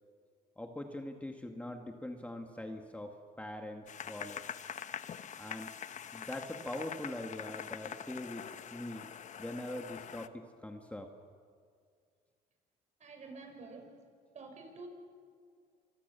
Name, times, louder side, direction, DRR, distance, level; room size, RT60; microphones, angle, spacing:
voice 1, 0.6-4.4 5.4-5.7 6.1-9.1 9.4-11.1, left 1 dB, 10° left, 3 dB, 1.9 m, -42 dB
sound 1, 3.9-10.3, left 8 dB, 45° left, 1.1 m, -44 dB
voice 2, 13.0-14.0 14.3-14.9, right 3 dB, 45° right, 4 dB, 6.2 m, -48 dB
29.0 x 26.5 x 7.0 m, 2.1 s
cardioid pair, 110°, 17 cm